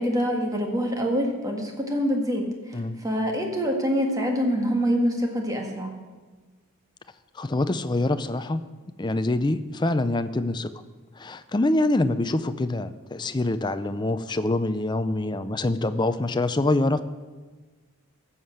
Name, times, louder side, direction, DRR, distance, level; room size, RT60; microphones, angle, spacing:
voice 1, 0.0-5.9, equal, 15° right, 2 dB, 1.7 m, -25 dB
voice 2, 7.4-8.6 9.0-10.7 11.2-17.0, left 2 dB, 20° left, 11 dB, 0.5 m, -25 dB
14.5 x 7.3 x 6.4 m, 1.4 s
head